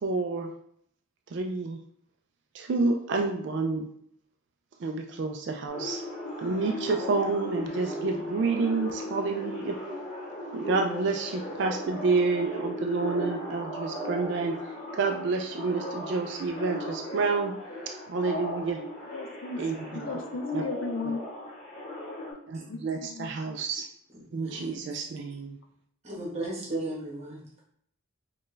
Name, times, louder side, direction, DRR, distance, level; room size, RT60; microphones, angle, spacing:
voice 1, 0.0-0.5 1.3-1.8 2.5-3.9 4.8-6.0 6.4-9.8 10.5-14.6 14.9-17.6 17.9-18.8 19.6-20.1 20.5-20.7 22.5-23.8 24.3-25.6, right 4 dB, 55° right, 3 dB, 0.3 m, -29 dB
sound 1, 5.7-22.3, left 1 dB, 30° left, 1.2 m, -37 dB
voice 2, 19.1-19.6 19.9-21.2 23.2-23.3, left 3 dB, 70° left, 5 dB, 0.5 m, -35 dB
voice 3, 24.1-24.8 26.0-27.4, right 2 dB, 30° right, -4 dB, 1.2 m, -35 dB
4.3 x 2.3 x 3.2 m, 0.68 s
head